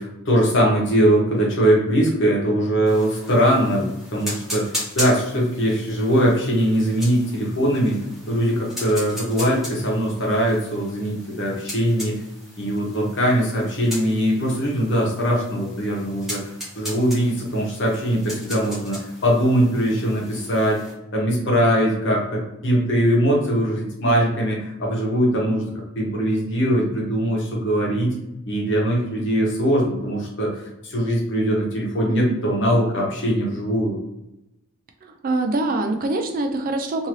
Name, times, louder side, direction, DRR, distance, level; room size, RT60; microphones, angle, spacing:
voice 1, 0.0-12.2 12.6-20.8 21.1-28.1 28.5-34.0, equal, 55° left, -2 dB, 1.0 m, -21 dB
sound 1, 2.9-20.9, left 1 dB, ahead, 1.0 m, -37 dB
voice 2, 32.1-32.4 35.0-37.1, right 2 dB, 40° right, 5 dB, 0.3 m, -24 dB
2.7 x 2.6 x 3.0 m, 0.88 s
head